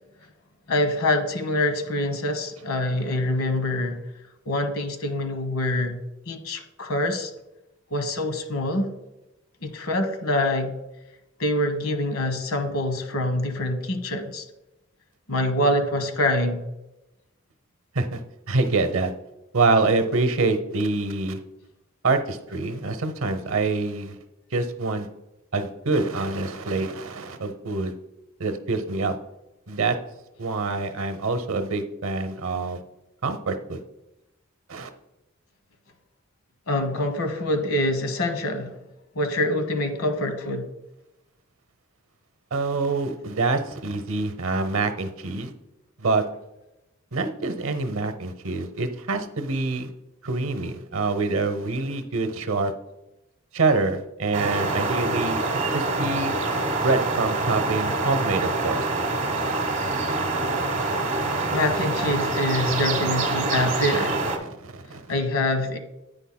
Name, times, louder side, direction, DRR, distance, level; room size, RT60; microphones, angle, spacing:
voice 1, 0.7-4.0 4.5-6.0 6.3-7.3 7.9-8.9 9.6-10.8 11.4-14.4 15.3-16.6 36.7-38.7 39.1-40.7 61.5-64.2 65.1-65.8, left 1 dB, 80° left, 7 dB, 1.2 m, -25 dB
voice 2, 18.5-19.1 19.5-21.4 22.0-24.1 24.5-25.1 25.5-27.9 28.4-29.1 29.7-30.0 30.4-32.8 33.2-33.8 34.7-34.9 42.5-45.5 46.0-46.3 47.1-49.9 50.2-52.7 53.5-55.4 55.7-56.3 56.8-58.9 64.6-65.0, right 3 dB, 70° right, 9 dB, 0.8 m, -25 dB
sound 1, 54.3-64.4, right 3 dB, 35° right, 1.2 m, -25 dB
10.0 x 9.0 x 2.2 m, 0.95 s
head